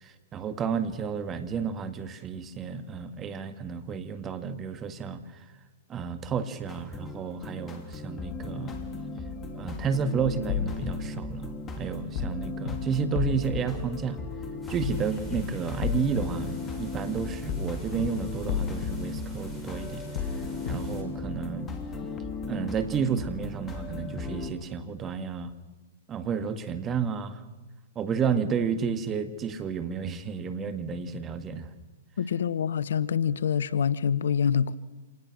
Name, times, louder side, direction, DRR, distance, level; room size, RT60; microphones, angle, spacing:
voice 1, 0.0-5.2 5.9-8.8 9.5-14.2 14.7-20.0 20.7-21.7 22.5-25.5 26.1-27.4 28.0-31.7, right 6 dB, 25° right, 9 dB, 1.9 m, -31 dB
sound 1, 6.7-24.5, left 3 dB, 20° left, 2.9 m, -37 dB
sound 2, 10.5-10.9 12.2-12.4 12.7-12.8 13.2-13.6 14.8-15.0 15.3-15.4 15.8-16.3 17.5-17.7 18.0-18.1 18.5-18.9 20.2-20.4 20.7-20.8, left 8 dB, 50° left, 2.0 m, -30 dB
sound 3, 14.6-21.0, equal, ahead, 6.4 m, -45 dB
voice 2, 32.2-34.7, left 7 dB, 70° left, 18 dB, 0.9 m, -26 dB
26.5 x 19.5 x 6.3 m, 1.2 s
hypercardioid pair, 120°, 0 cm